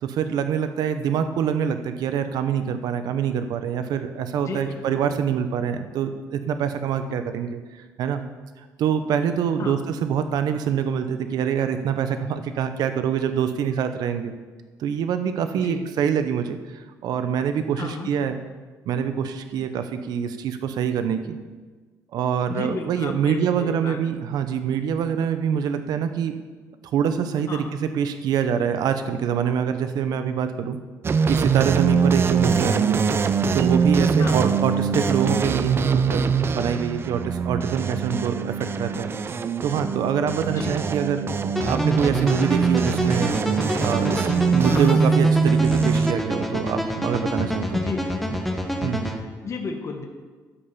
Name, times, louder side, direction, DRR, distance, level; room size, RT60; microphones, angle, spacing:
voice 1, 0.0-8.2 8.6-14.3 14.8-18.4 18.9-21.4 22.1-26.4 26.9-30.8 31.3-33.0 33.5-43.4 43.8-47.8 48.8-49.1, right 8 dB, 70° right, 9 dB, 0.8 m, -25 dB
voice 2, 4.4-5.0 9.6-9.8 15.5-15.8 17.8-18.1 22.5-24.0 27.5-27.8 32.3-32.4 34.2-34.4 40.5-40.8 44.7-45.0 47.7-48.4 49.2-50.0, left 4 dB, 45° left, 2 dB, 1.4 m, -33 dB
sound 1, 31.0-46.1, right 5 dB, 35° right, 0.5 m, -22 dB
sound 2, 41.6-49.2, equal, 5° left, 1.5 m, -28 dB
12.5 x 5.5 x 7.2 m, 1.4 s
cardioid pair, 105°, 7 cm